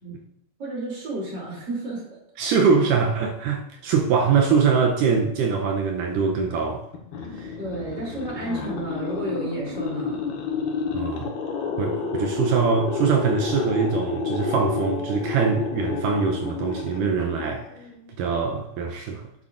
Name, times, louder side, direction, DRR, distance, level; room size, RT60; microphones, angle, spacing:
voice 1, 0.6-2.0 7.6-10.2, right 2 dB, 30° right, 3.2 m, -31 dB
voice 2, 2.4-6.9 7.4-7.5 10.9-11.3 11.8-17.7 18.2-19.2, right 5 dB, 75° right, 2.0 m, -23 dB
sound 1, 6.9-18.1, left 5 dB, 80° left, 3.2 m, -30 dB
9.7 x 8.0 x 2.5 m
omnidirectional pair, 4.3 m